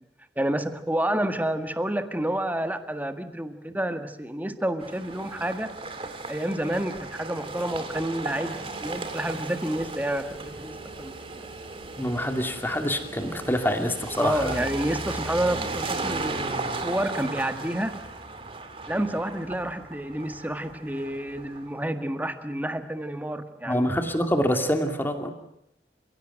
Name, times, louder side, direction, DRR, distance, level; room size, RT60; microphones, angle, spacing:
voice 1, 0.4-5.7 6.3-11.5 14.2-18.0 18.9-23.9, right 1 dB, 10° right, 8 dB, 1.7 m, -29 dB
sound 1, 4.8-21.8, right 3 dB, 30° right, 2.4 m, -36 dB
voice 2, 12.0-14.6 23.7-25.3, equal, 10° left, 5 dB, 2.6 m, -26 dB
29.5 x 17.0 x 9.2 m, 0.79 s
head